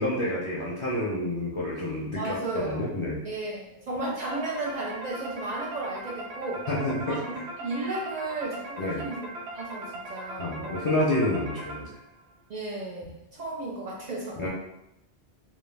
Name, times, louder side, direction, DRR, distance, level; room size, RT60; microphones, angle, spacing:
voice 1, 0.0-3.2 6.7-7.2 8.8-9.0 10.4-11.9 14.4-14.5, left 1 dB, 45° left, -7 dB, 0.4 m, -28 dB
voice 2, 2.2-2.8 3.2-6.7 7.1-9.3 9.5-10.9 12.5-14.5, right 2 dB, 55° right, -3 dB, 0.5 m, -34 dB
sound 1, 4.3-12.2, right 1 dB, 90° right, 0.9 m, -40 dB
2.3 x 2.1 x 3.2 m, 0.86 s
omnidirectional pair, 1.0 m